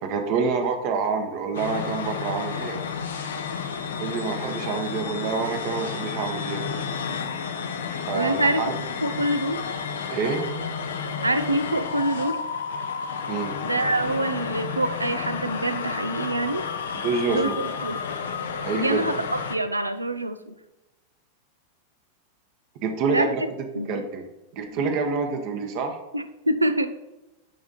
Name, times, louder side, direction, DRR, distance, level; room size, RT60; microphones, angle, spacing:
voice 1, 0.0-2.8 4.0-6.6 7.9-8.7 10.1-10.4 13.3-13.6 17.0-17.5 18.6-19.1 22.8-23.4 23.9-24.3 24.5-26.0, right 5 dB, 45° right, 4 dB, 1.0 m, -27 dB
sound 1, 1.5-19.6, left 6 dB, 65° left, 0.7 m, -31 dB
voice 2, 8.1-8.6 9.0-9.6 11.2-12.4 13.6-16.7 17.3-18.1 18.7-20.5 23.1-23.3 23.7-24.0 26.1-26.9, right 1 dB, 85° right, 10 dB, 0.5 m, -25 dB
10.0 x 3.5 x 4.1 m, 1.0 s
figure-of-eight pair, 90°, 0 cm